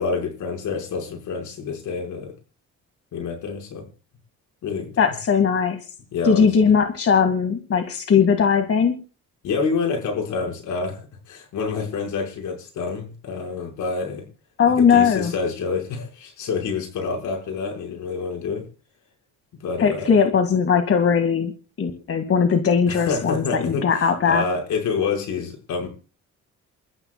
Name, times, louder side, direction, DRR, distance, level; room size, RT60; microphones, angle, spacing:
voice 1, 0.0-2.3 3.1-3.8 4.6-5.1 6.1-6.7 9.4-11.0 11.3-14.2 14.8-18.7 19.6-20.1 22.9-25.9, left 5 dB, 80° left, 3 dB, 5.1 m, -27 dB
voice 2, 5.0-5.8 6.2-9.0 14.6-15.3 19.8-21.5 21.8-24.4, left 6 dB, 50° left, 6 dB, 2.0 m, -19 dB
28.5 x 14.0 x 2.3 m, 0.36 s
cardioid pair, 90°, 30 cm